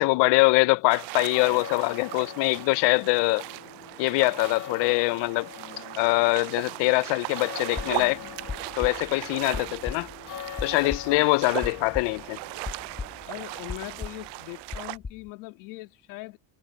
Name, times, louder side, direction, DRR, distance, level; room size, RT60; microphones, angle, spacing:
voice 1, 0.0-3.4 4.0-5.5 6.0-8.2 8.8-10.1 10.6-12.4, left 24 dB, 70° left, 0.6 m, -23 dB
sound 1, 0.9-15.0, right 24 dB, 65° right, 0.5 m, -38 dB
sound 2, 1.1-14.6, left 10 dB, 40° left, 1.8 m, -43 dB
sound 3, 7.8-12.4 12.6-13.4 13.7-14.3 14.7-15.3, left 4 dB, 15° left, 1.3 m, -37 dB
voice 2, 11.0-11.4 13.2-16.4, left 21 dB, 90° left, 2.3 m, -41 dB
cardioid pair, 135°, 45 cm